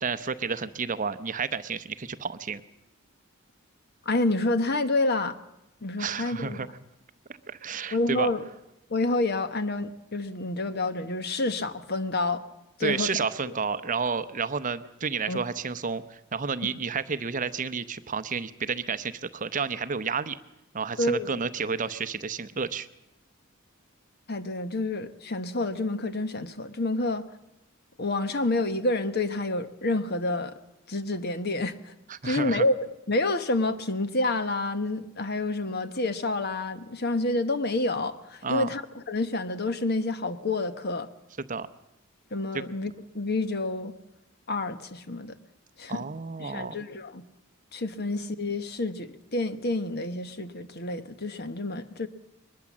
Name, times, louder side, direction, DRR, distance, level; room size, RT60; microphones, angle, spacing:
voice 1, 0.0-2.6 6.0-6.7 7.5-8.3 12.8-20.4 20.7-22.9 32.1-32.6 38.4-38.7 41.4-41.7 42.5-42.6 45.9-46.7, right 5 dB, 40° right, 13 dB, 0.7 m, -31 dB
voice 2, 4.0-5.4 5.8-6.6 7.9-8.4 8.9-12.4 12.8-13.2 15.3-15.4 21.0-21.4 24.3-27.3 28.0-30.6 30.9-31.9 32.2-41.1 42.3-43.9 44.5-45.4 45.8-46.0 46.4-47.2 47.7-52.1, left 2 dB, 50° left, 10 dB, 1.1 m, -28 dB
22.0 x 20.5 x 7.3 m, 0.90 s
head